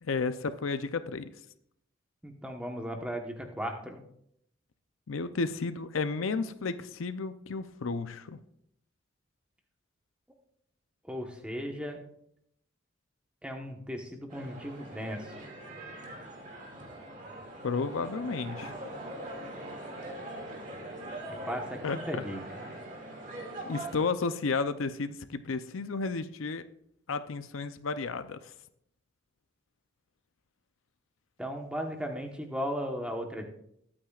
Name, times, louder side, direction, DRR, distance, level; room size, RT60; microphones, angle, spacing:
voice 1, 0.0-1.3 5.1-8.4 17.6-18.7 21.8-22.2 23.7-26.6 27.1-28.5, left 4 dB, 85° left, 11 dB, 0.6 m, -32 dB
voice 2, 2.2-4.0 11.0-12.0 13.4-15.5 21.3-22.6 31.4-33.5, equal, 5° right, 2 dB, 1.1 m, -36 dB
sound 1, 14.3-24.1, right 1 dB, 40° right, 2.3 m, -42 dB
21.5 x 8.7 x 2.4 m, 0.73 s
head